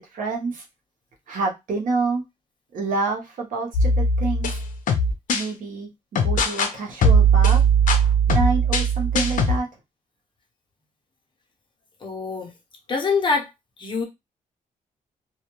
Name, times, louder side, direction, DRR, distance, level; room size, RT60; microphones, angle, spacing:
voice 1, 0.1-0.6 1.3-2.2 2.7-4.5 5.3-5.9 6.2-7.6 8.3-9.7, right 3 dB, 75° right, 0.8 m, -27 dB
sound 1, 3.7-5.5 6.2-6.7 7.0-9.6, right 3 dB, 70° left, 0.5 m, -19 dB
voice 2, 12.0-12.5 12.9-13.5 13.8-14.0, left 4 dB, 35° left, 0.8 m, -24 dB
2.2 x 2.2 x 3.0 m
wide cardioid pair, 140°, 14 cm